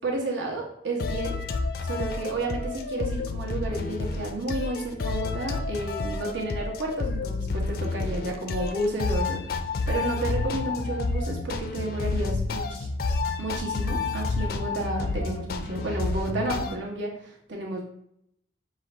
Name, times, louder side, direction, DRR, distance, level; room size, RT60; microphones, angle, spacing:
voice 1, 0.0-1.4 1.8-12.9 13.4-17.8, right 2 dB, 85° right, -2 dB, 1.2 m, -31 dB
sound 1, 1.0-16.8, left 3 dB, 50° left, 0.4 m, -30 dB
5.5 x 2.6 x 3.3 m, 0.72 s
head